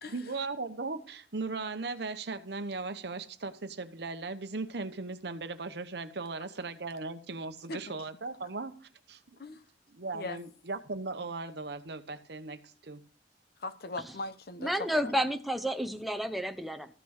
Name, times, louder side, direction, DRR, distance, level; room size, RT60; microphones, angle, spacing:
voice 1, 0.1-8.8 9.1-9.4 9.9-13.0, right 3 dB, 60° right, 0.9 m, -38 dB
voice 2, 13.6-14.7 15.0-15.1, left 2 dB, 55° left, 0.9 m, -39 dB
voice 3, 14.6-16.9, equal, ahead, 0.8 m, -31 dB
14.0 x 6.0 x 6.4 m
head